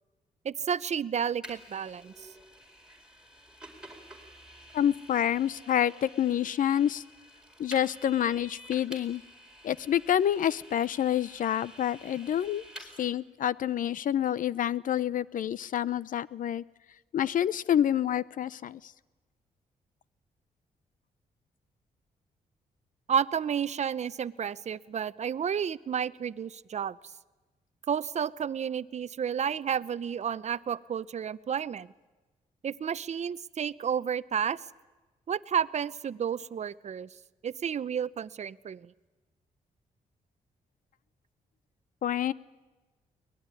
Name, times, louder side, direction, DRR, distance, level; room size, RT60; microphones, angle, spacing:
voice 1, 0.4-2.3 23.1-27.0 27.9-31.9 32.6-34.6 35.3-37.1 37.4-38.9, right 8 dB, 50° right, 17 dB, 0.7 m, -31 dB
Vehicle, 1.4-13.1, right 1 dB, 5° right, 4.6 m, -50 dB
voice 2, 4.7-7.0 7.6-9.2 9.6-12.6 13.0-16.6 17.1-18.9 42.0-42.3, left 10 dB, 65° left, 20 dB, 0.7 m, -28 dB
22.5 x 19.5 x 9.8 m, 1.2 s
cardioid pair, 75°, 15 cm